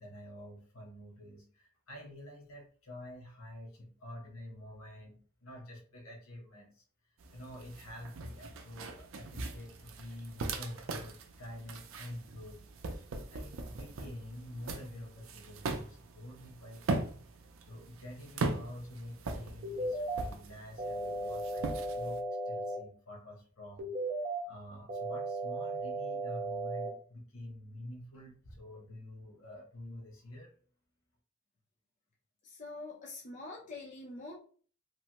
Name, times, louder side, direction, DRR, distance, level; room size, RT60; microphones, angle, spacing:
voice 1, 0.0-6.8 7.3-12.6 13.2-17.1 17.7-23.9 24.4-30.5, left 1 dB, 85° left, 1 dB, 1.0 m, -48 dB
sound 1, 7.2-22.2, right 3 dB, 70° right, 0.4 m, -40 dB
sound 2, 19.6-20.2 20.8-22.8 23.8-24.4 24.9-26.9, right 2 dB, 45° right, 0.7 m, -36 dB
voice 2, 32.4-34.4, left 2 dB, 35° left, -3 dB, 0.5 m, -45 dB
3.2 x 2.1 x 2.9 m, 0.44 s
head